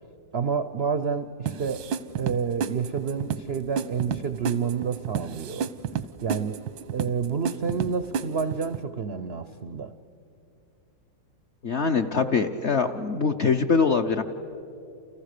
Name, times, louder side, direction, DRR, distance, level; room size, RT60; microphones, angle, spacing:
voice 1, 0.3-1.8 2.2-5.7 6.2-6.6 6.9-9.9, right 6 dB, 65° right, 11 dB, 0.6 m, -29 dB
sound 1, 1.5-8.8, right 7 dB, 90° right, 1.6 m, -32 dB
voice 2, 11.6-14.2, left 5 dB, 55° left, 5 dB, 0.8 m, -23 dB
29.5 x 29.5 x 6.7 m, 2.8 s
omnidirectional pair, 2.0 m